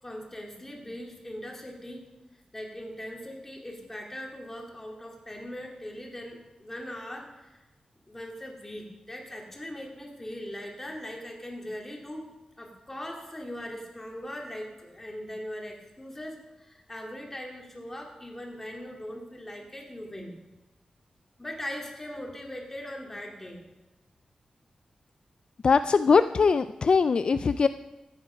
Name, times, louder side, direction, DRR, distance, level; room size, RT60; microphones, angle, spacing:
voice 1, 0.0-2.1 2.5-7.6 8.1-12.3 12.6-20.3 21.4-23.6, left 1 dB, 15° left, 0 dB, 2.6 m, -40 dB
voice 2, 25.6-27.7, left 5 dB, 50° left, 12 dB, 0.3 m, -21 dB
14.0 x 9.6 x 5.1 m, 1.0 s
wide cardioid pair, 125°, 2 cm